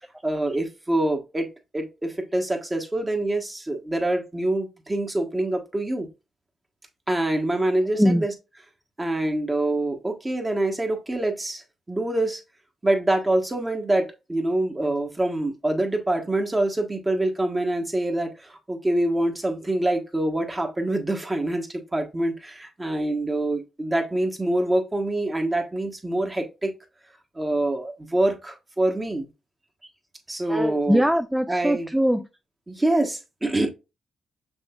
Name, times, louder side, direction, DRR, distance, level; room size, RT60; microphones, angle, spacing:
voice 1, 0.2-1.5 1.7-6.1 7.1-8.3 9.0-12.4 12.8-26.7 27.3-29.3 30.3-31.0 31.5-31.9 32.7-33.7, right 1 dB, 20° right, 1.2 m, -25 dB
voice 2, 7.9-8.3 29.8-29.9 30.5-32.3, equal, 5° right, 0.4 m, -22 dB
6.2 x 3.3 x 2.4 m
cardioid pair, 70°, 0 cm